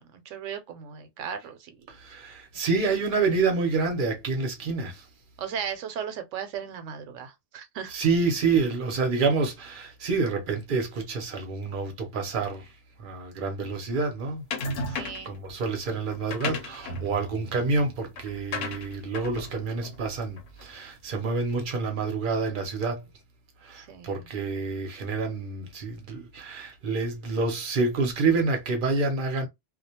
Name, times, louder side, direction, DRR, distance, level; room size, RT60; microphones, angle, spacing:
voice 1, 0.0-1.8 5.4-7.9 14.9-15.4 23.7-24.3, right 8 dB, 75° right, 0.9 m, -37 dB
voice 2, 1.9-5.1 7.9-12.7 13.0-14.4 14.9-23.1 23.6-29.5, right 4 dB, 50° right, 0.7 m, -28 dB
sound 1, 14.5-15.4 16.1-20.8, left 2 dB, 75° left, 1.0 m, -35 dB
2.4 x 2.2 x 2.7 m
omnidirectional pair, 1.3 m